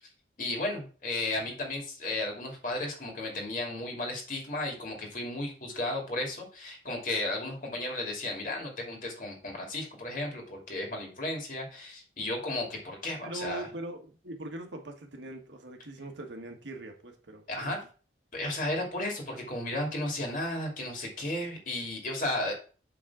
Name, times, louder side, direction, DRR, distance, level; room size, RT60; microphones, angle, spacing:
voice 1, 0.4-13.7 17.5-17.8 18.3-22.5, left 1 dB, 45° left, 1 dB, 2.6 m, -34 dB
voice 2, 13.2-17.7, right 1 dB, 85° right, 4 dB, 1.5 m, -41 dB
7.6 x 3.7 x 6.0 m, 0.38 s
head